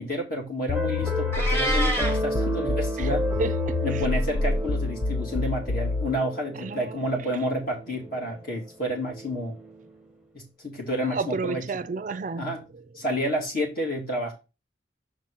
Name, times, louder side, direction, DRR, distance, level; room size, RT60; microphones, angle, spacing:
voice 1, 0.0-3.3 3.8-9.5 10.3-11.6 12.4-12.6 12.9-14.3, equal, 50° left, 2.6 m, -30 dB
sound 1, 0.7-6.2, left 3 dB, 80° left, 0.5 m, -27 dB
sound 2, 0.7-9.9, right 1 dB, 5° right, 0.8 m, -33 dB
Meow, 1.3-2.2, right 1 dB, 10° left, 1.3 m, -27 dB
voice 2, 3.4-4.0 6.6-7.4 11.0-12.6, right 4 dB, 40° right, 0.4 m, -32 dB
6.2 x 4.2 x 5.0 m
head